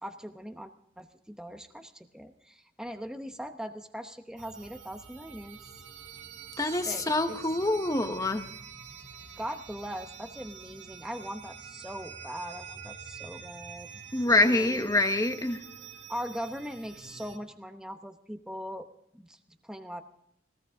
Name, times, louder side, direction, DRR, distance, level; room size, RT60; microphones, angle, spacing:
voice 1, 0.0-5.6 6.9-7.4 9.4-15.0 16.1-18.9 19.1-20.0, equal, 5° right, 6 dB, 0.9 m, -40 dB
sound 1, 4.4-17.4, right 7 dB, 85° right, 2.1 m, -46 dB
voice 2, 6.6-8.4 14.1-15.6, left 2 dB, 20° left, 8 dB, 1.2 m, -26 dB
19.5 x 18.5 x 3.7 m, 0.71 s
head